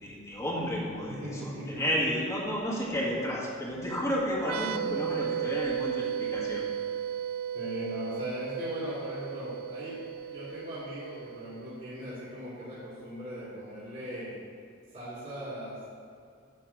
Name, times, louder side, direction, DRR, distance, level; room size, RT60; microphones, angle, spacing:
voice 1, 0.0-6.6, equal, 15° left, -5 dB, 1.8 m, -32 dB
voice 2, 1.1-1.8 7.5-14.4 14.9-15.9, equal, 40° right, -10 dB, 2.4 m, -39 dB
sound 1, 4.4-11.9, right 9 dB, 80° right, 0.4 m, -35 dB
10.5 x 3.6 x 7.2 m, 2.3 s
head